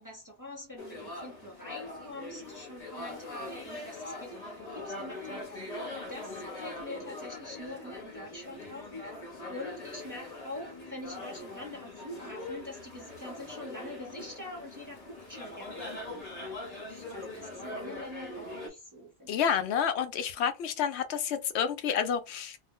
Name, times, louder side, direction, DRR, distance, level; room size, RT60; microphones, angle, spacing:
voice 1, 0.0-5.7 6.1-9.2 9.5-19.6, left 1 dB, 20° right, 0.6 m, -45 dB
sound 1, 0.8-18.7, left 2 dB, 40° left, 1.0 m, -42 dB
voice 2, 19.3-22.6, left 8 dB, 80° left, 0.8 m, -29 dB
2.4 x 2.1 x 3.6 m
omnidirectional pair, 1.1 m